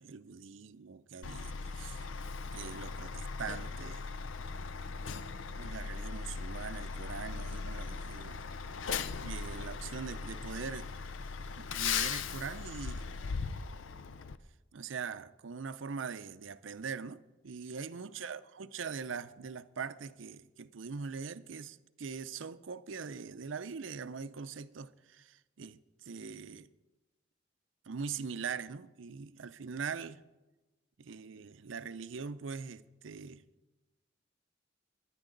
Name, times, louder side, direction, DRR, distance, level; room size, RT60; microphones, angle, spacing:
voice 1, 0.0-2.0 2.5-4.1 5.6-8.4 9.2-10.9 11.6-13.0 14.7-26.7 27.9-30.2 31.0-33.4, right 5 dB, 80° right, 0.6 m, -42 dB
Truck, 1.2-14.4, left 5 dB, 85° left, 0.6 m, -39 dB
22.0 x 9.9 x 3.9 m
head